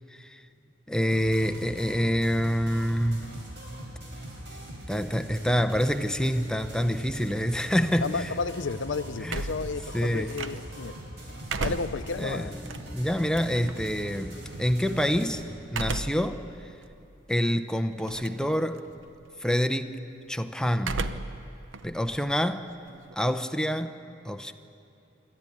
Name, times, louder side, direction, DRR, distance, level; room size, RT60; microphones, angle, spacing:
voice 1, 0.9-3.3 4.9-8.3 9.2-9.4 9.9-10.3 12.2-15.4 15.7-16.4 17.3-18.8 19.4-20.0 20.3-21.1 21.8-22.7 23.2-24.0 24.2-24.5, equal, 5° left, 6 dB, 0.7 m, -27 dB
sound 1, 1.1-15.4, right 1 dB, 65° right, 4.1 m, -41 dB
voice 2, 8.0-10.9 11.6-12.6, left 4 dB, 75° left, 12 dB, 0.6 m, -32 dB
sound 2, 9.3-10.9 11.3-13.9 15.7-16.4 16.9-17.0 18.0-18.5 18.8-19.2 20.8-21.4 21.7-23.1, right 3 dB, 85° right, 0.8 m, -34 dB
27.5 x 12.5 x 8.7 m, 2.8 s
head